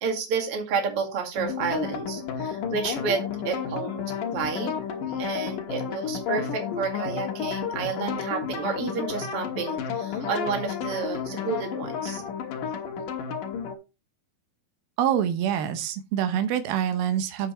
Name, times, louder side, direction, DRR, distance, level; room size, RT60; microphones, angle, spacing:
voice 1, 0.0-4.8 5.2-12.2, right 5 dB, 45° right, 2.6 m, -30 dB
sound 1, 1.4-13.8, left 7 dB, 70° left, 2.8 m, -31 dB
voice 2, 15.0-17.5, right 9 dB, 90° right, 2.8 m, -26 dB
8.6 x 7.7 x 3.0 m
omnidirectional pair, 4.1 m